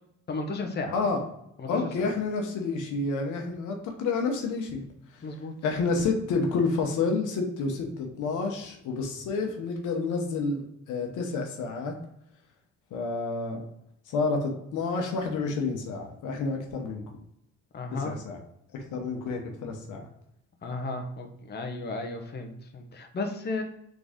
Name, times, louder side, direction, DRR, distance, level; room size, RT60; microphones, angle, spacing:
voice 1, 0.3-1.0 1.6-2.1 5.2-5.5 17.7-18.1 20.6-23.6, left 3 dB, 35° left, 4 dB, 0.9 m, -34 dB
voice 2, 0.9-1.2 1.7-4.8 5.1-5.3 5.6-12.0 12.9-13.7 14.1-17.2 17.9-18.4 18.7-20.1, left 4 dB, 85° left, 2 dB, 1.1 m, -29 dB
3.9 x 3.7 x 3.6 m, 0.77 s
cardioid pair, 90°, 30 cm